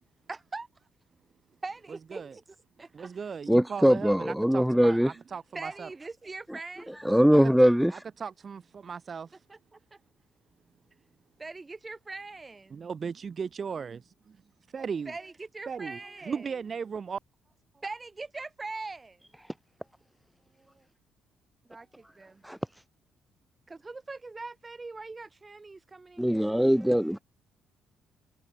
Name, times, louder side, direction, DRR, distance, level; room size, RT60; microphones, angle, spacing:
voice 1, 0.3-0.7 1.6-2.4 2.8-3.2 5.5-6.9 9.5-10.0 11.4-12.9 15.0-16.6 17.7-19.3 20.5-20.9 21.6-22.4 23.7-27.0, right 3 dB, 20° right, 3.3 m, -42 dB
voice 2, 2.9-5.9 7.9-9.4 12.7-14.4 14.7-15.1 15.7-16.0 16.3-17.2, right 6 dB, 35° right, 1.0 m, -37 dB
voice 3, 3.5-5.2 7.0-8.0 22.4-22.6 26.2-27.2, equal, ahead, 0.4 m, -22 dB
cardioid pair, 125°, 0 cm